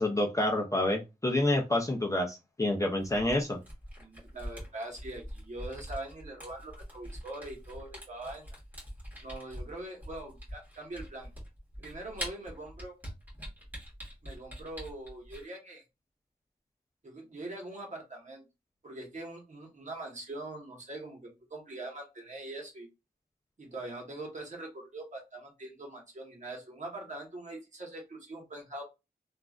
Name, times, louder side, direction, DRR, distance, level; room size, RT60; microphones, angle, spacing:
voice 1, 0.0-3.6, left 1 dB, 20° left, 1 dB, 0.5 m, -28 dB
Camera, 3.0-15.5, equal, 10° right, 1.6 m, -44 dB
voice 2, 4.0-8.5 9.2-11.3 11.8-12.9 14.2-15.8 17.0-18.4 18.8-22.9 23.6-28.8, right 2 dB, 45° right, 0 dB, 1.1 m, -43 dB
3.1 x 2.4 x 2.4 m, 0.25 s
wide cardioid pair, 120°, 17 cm